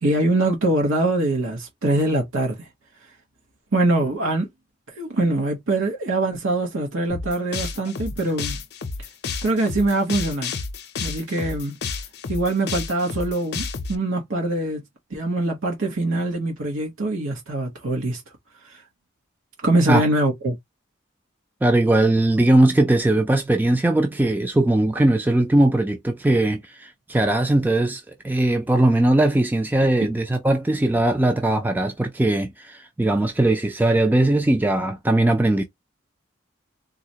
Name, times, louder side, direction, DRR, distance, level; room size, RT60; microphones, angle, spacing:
voice 1, 0.0-2.7 3.7-4.5 5.0-8.6 9.4-10.5 11.0-11.7 12.3-14.8 15.1-18.2 18.6-18.8 19.6-20.6, right 2 dB, 80° right, 0.9 m, -23 dB
sound 1, 7.1-13.9, left 4 dB, 50° left, 0.5 m, -31 dB
voice 2, 21.6-35.6, right 1 dB, 10° right, 0.3 m, -19 dB
3.9 x 2.0 x 2.8 m
head